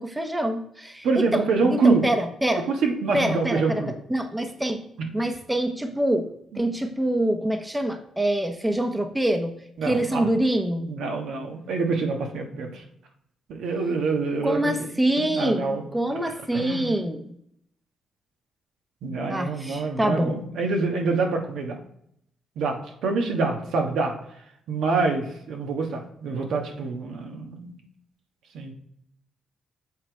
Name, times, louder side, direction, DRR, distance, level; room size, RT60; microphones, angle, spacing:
voice 1, 0.0-1.4 1.7-2.7 3.1-3.8 4.1-4.9 5.1-6.3 6.6-9.5 9.8-10.9 14.4-17.3 19.3-20.4, right 1 dB, 10° right, 6 dB, 0.9 m, -25 dB
voice 2, 1.0-2.0 2.7-3.9 6.5-6.7 9.8-10.3 10.8-12.8 13.5-15.8 16.5-17.0 19.0-21.8 22.6-24.1 24.7-27.8 28.5-28.7, right 4 dB, 75° right, 2 dB, 1.3 m, -26 dB
7.6 x 3.9 x 4.6 m, 0.73 s
cardioid pair, 90°, 0 cm